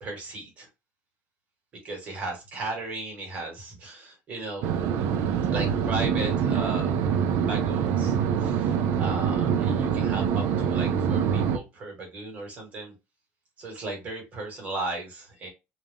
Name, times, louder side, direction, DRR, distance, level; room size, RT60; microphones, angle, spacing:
voice 1, 0.0-0.7 1.8-4.6 5.5-6.9 7.4-12.9 13.6-15.5, right 2 dB, 30° right, 1.2 m, -36 dB
sound 1, 4.6-11.6, right 7 dB, 60° right, 0.4 m, -25 dB
2.4 x 2.1 x 3.3 m
cardioid pair, 170°, 5 cm